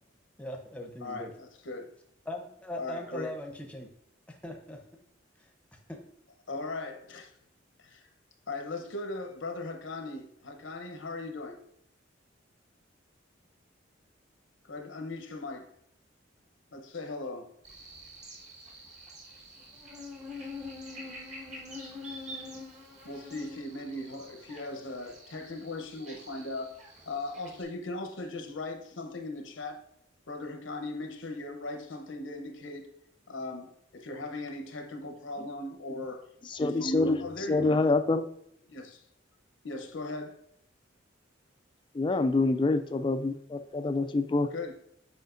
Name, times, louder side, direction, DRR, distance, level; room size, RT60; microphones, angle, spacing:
voice 1, 0.4-1.3 2.3-3.9 4.3-4.8 5.9-6.0, left 1 dB, 5° left, 2 dB, 0.7 m, -39 dB
voice 2, 1.0-1.9 2.8-3.3 6.5-7.3 7.8-8.1 8.5-11.6 14.6-15.7 16.7-17.5 23.0-26.7 27.1-29.8 30.3-32.9 33.3-36.3 36.6-37.8 38.7-39.0 39.6-40.4 44.5-44.7, left 2 dB, 80° left, 6 dB, 0.9 m, -38 dB
Buzz, 17.6-27.6, left 2 dB, 35° right, 1.4 m, -45 dB
voice 3, 36.5-38.3 41.9-44.5, left 3 dB, 25° left, 10 dB, 0.3 m, -26 dB
8.0 x 5.0 x 2.6 m, 0.72 s
head